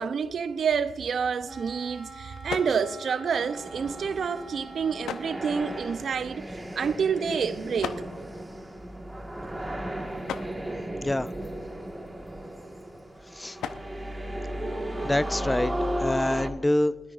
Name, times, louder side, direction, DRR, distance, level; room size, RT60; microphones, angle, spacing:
voice 1, 0.0-6.4 6.8-8.0, right 6 dB, 60° right, 0.6 m, -28 dB
sound 1, 0.9-15.2, left 7 dB, 85° left, 0.6 m, -44 dB
Wind instrument woodwind instrument, 1.5-6.0, right 2 dB, 40° right, 2.2 m, -45 dB
sound 2, 3.4-16.5, right 1 dB, 10° right, 1.6 m, -35 dB
voice 2, 11.0-11.3 13.3-13.6 15.0-15.7 16.0-16.9, left 1 dB, 15° left, 0.4 m, -25 dB
20.5 x 12.5 x 2.5 m
supercardioid pair, 60°, 0 cm